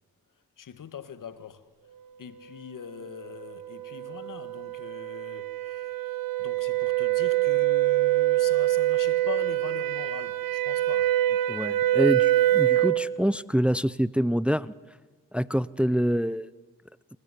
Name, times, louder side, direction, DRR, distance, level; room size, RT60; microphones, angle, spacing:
voice 1, 0.6-1.7 2.2-11.2, left 8 dB, 65° left, 1.7 m, -42 dB
sound 1, 3.1-13.0, right 15 dB, 85° right, 1.1 m, -25 dB
voice 2, 11.5-14.7 15.3-16.5, equal, 5° right, 0.7 m, -26 dB
28.5 x 17.0 x 9.9 m
supercardioid pair, 45°, 34 cm